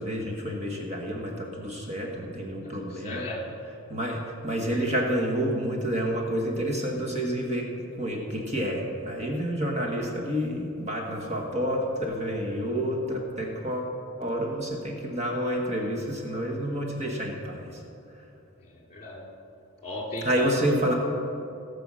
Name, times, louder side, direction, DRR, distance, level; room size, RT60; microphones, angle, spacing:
voice 1, 0.0-3.2 3.9-7.7 8.0-13.9 14.2-17.8 20.2-20.9, equal, 30° right, 0 dB, 1.3 m, -29 dB
voice 2, 2.8-3.4 18.6-19.2 19.8-21.0, left 1 dB, 30° left, -1 dB, 2.7 m, -36 dB
17.0 x 6.8 x 6.2 m, 2.6 s
head